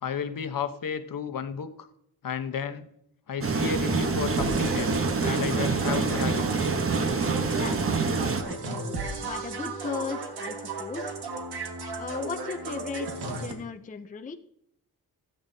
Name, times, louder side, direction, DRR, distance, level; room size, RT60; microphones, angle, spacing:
voice 1, 0.0-1.9 2.2-2.9 3.3-6.6, left 7 dB, 60° left, 9 dB, 0.9 m, -33 dB
sound 1, 3.4-8.4, right 4 dB, 35° right, 1.0 m, -26 dB
sound 2, 4.4-13.5, right 2 dB, 75° right, 1.9 m, -35 dB
voice 2, 7.5-11.1 12.0-14.4, left 5 dB, 20° left, 7 dB, 0.5 m, -37 dB
16.5 x 9.0 x 2.7 m, 0.74 s
wide cardioid pair, 145°, 39 cm